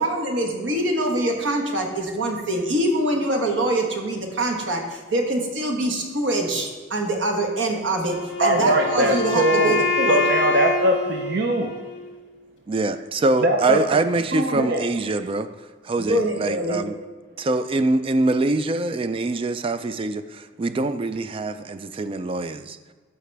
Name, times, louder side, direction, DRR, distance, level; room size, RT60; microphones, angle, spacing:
voice 1, 0.0-10.2 16.0-16.8, right 1 dB, 70° right, 2 dB, 1.3 m, -24 dB
Wind instrument woodwind instrument, 8.1-12.1, left 3 dB, 65° left, 1.2 m, -26 dB
voice 2, 8.4-11.7 13.4-13.8 14.3-14.8, right 1 dB, 55° right, 4 dB, 0.7 m, -21 dB
voice 3, 12.7-15.5 15.8-17.0 17.4-22.8, right 2 dB, 30° right, 11 dB, 0.3 m, -24 dB
13.0 x 4.8 x 3.4 m, 1.4 s
head